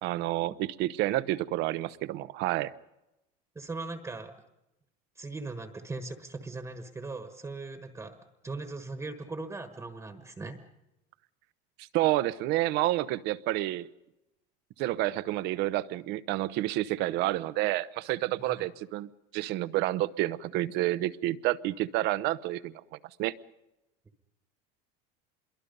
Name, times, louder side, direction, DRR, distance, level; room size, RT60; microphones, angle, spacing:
voice 1, 0.0-2.7 11.8-13.9 14.8-22.7 23.2-23.3, right 16 dB, 60° right, 0.8 m, -29 dB
voice 2, 3.5-4.3 5.1-8.2 8.4-10.6 18.4-18.6, right 3 dB, 15° right, 1.4 m, -39 dB
26.0 x 22.5 x 5.4 m
cardioid pair, 135°, 20 cm